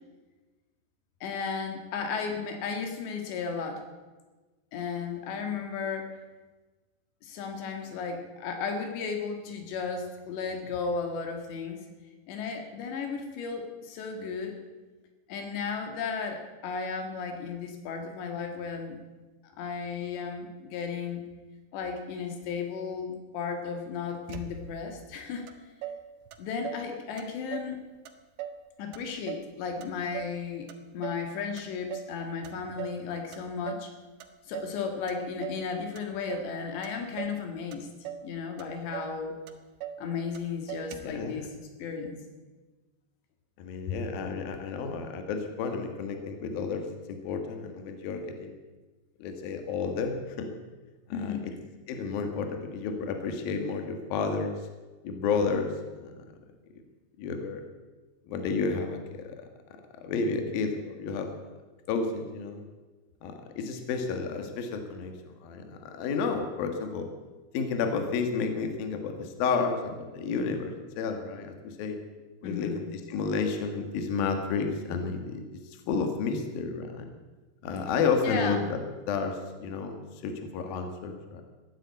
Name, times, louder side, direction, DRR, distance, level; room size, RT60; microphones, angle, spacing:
voice 1, 1.2-3.8 4.7-6.1 7.2-11.8 12.3-14.6 15.3-19.0 19.4-21.2 21.7-25.5 26.4-27.8 28.8-30.7 30.9-33.9 34.5-37.9 38.2-39.4 40.0-41.5 41.8-42.2 43.9-44.0 51.1-51.5 72.4-72.9 78.2-78.7, left 5 dB, 80° left, 5 dB, 3.9 m, -34 dB
Motor vehicle (road), 24.3-24.9 25.5-25.6 25.8-26.9 27.2-27.8 28.1-28.6 28.9-30.4 30.7-31.3 31.6-32.2 32.4-33.0 33.3-33.9 34.2-34.8 35.1-35.7 36.0-36.5 36.8-37.4 37.7-38.3 38.6-38.7 38.9-39.2 39.5-40.0 40.3-40.4 40.7-41.2, right 9 dB, 80° right, 3.4 m, -40 dB
voice 2, 41.0-41.5 43.6-48.6 49.2-50.5 51.1-51.4 51.9-54.6 55.0-56.2 57.2-57.6 58.3-59.4 60.0-61.5 61.9-62.7 63.2-67.1 67.5-72.0 72.4-77.1 77.6-78.8 79.1-81.4, left 5 dB, 65° left, 5 dB, 3.1 m, -31 dB
15.0 x 11.0 x 8.5 m, 1.2 s
omnidirectional pair, 5.0 m